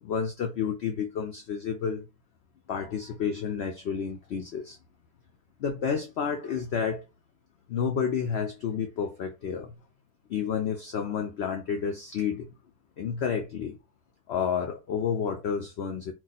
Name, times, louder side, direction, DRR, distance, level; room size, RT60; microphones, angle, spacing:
voice 1, 0.0-2.1 2.7-4.8 5.6-7.1 7.7-9.7 10.3-12.5 13.0-13.8 14.3-16.1, left 7 dB, 75° left, 0.5 m, -30 dB
2.5 x 2.4 x 3.9 m
omnidirectional pair, 1.7 m